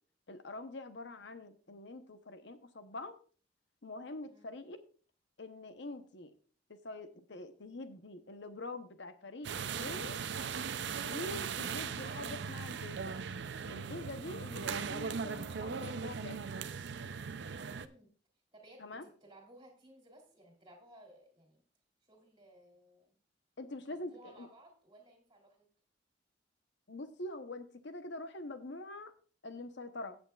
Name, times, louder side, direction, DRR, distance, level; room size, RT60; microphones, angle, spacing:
voice 1, 0.3-3.2 3.8-4.8 5.4-6.3 6.7-10.2 11.0-13.2 13.7-16.4 18.8-19.0 23.6-24.5 26.9-29.1 29.4-30.2, left 2 dB, 65° left, 9 dB, 0.9 m, -45 dB
sound 1, 9.4-17.9, right 6 dB, 65° right, 0.5 m, -39 dB
voice 2, 17.6-18.1 18.5-21.6 22.0-23.2 23.9-25.7, right 1 dB, 25° right, 1 dB, 3.2 m, -59 dB
16.0 x 8.0 x 2.4 m, 0.41 s
head